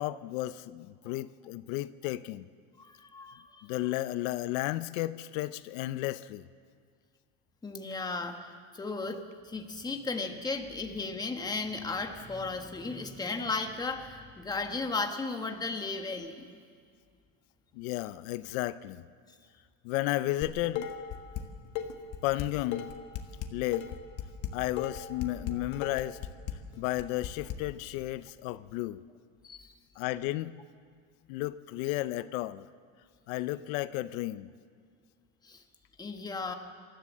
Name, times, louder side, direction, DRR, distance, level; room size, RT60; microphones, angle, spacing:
voice 1, 0.0-2.5 3.6-6.5 17.7-19.0 19.8-20.9 22.2-22.9 23.5-23.9 24.5-26.2 26.8-29.0 30.0-30.5 31.3-32.7 33.3-34.5, left 16 dB, 80° left, 15 dB, 0.7 m, -33 dB
voice 2, 2.8-3.8 7.6-16.5 25.5-25.6 29.4-29.7 35.4-35.6 36.0-36.5, left 3 dB, 10° left, 5 dB, 1.2 m, -35 dB
Dishes pots and pans, 20.4-21.4 21.8-27.6, left 9 dB, 50° left, 1.5 m, -36 dB
27.5 x 13.5 x 7.3 m, 2.1 s
cardioid pair, 165°, 40 cm